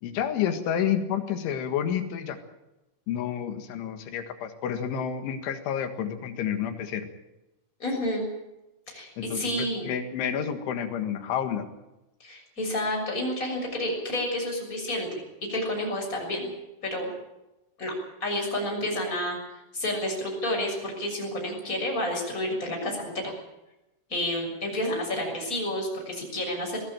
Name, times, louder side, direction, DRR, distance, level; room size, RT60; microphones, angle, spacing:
voice 1, 0.0-2.4 3.1-7.1 9.2-11.7, left 8 dB, 75° left, 8 dB, 4.1 m, -29 dB
voice 2, 7.8-8.2 8.9-9.9 12.2-15.1 15.4-16.5 16.8-17.1 17.8-17.9 18.2-19.4 19.7-23.3 24.1-26.8, left 1 dB, 15° left, 0 dB, 6.7 m, -30 dB
20.5 x 17.0 x 9.0 m, 0.97 s
omnidirectional pair, 5.6 m